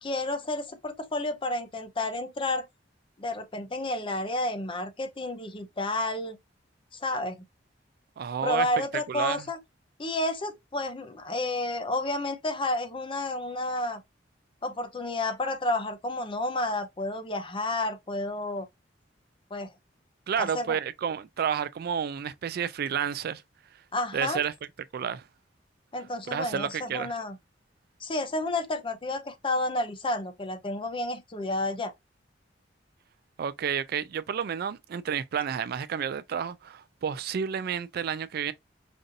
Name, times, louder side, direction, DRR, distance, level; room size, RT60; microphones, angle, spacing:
voice 1, 0.0-2.7 3.2-6.4 6.9-7.4 8.4-9.6 10.0-14.0 14.6-18.7 19.5-19.7 20.4-20.8 23.9-24.4 25.9-27.4 28.0-31.9, left 1 dB, 30° left, 0.6 m, -31 dB
voice 2, 8.2-8.7 9.1-9.5 20.3-23.4 24.1-24.5 24.9-25.2 26.3-27.1 33.4-38.5, right 7 dB, 55° right, 0.3 m, -30 dB
5.2 x 2.6 x 2.7 m
head